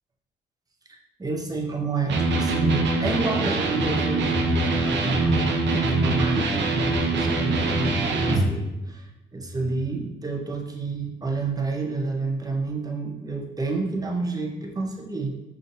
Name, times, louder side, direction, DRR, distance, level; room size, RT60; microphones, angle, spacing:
voice 1, 0.9-15.4, right 3 dB, 20° right, 1 dB, 0.7 m, -29 dB
Electric guitar, 2.1-8.5, right 2 dB, 65° right, 0.6 m, -23 dB
5.5 x 2.5 x 2.7 m, 1.0 s
cardioid pair, 90°, 20 cm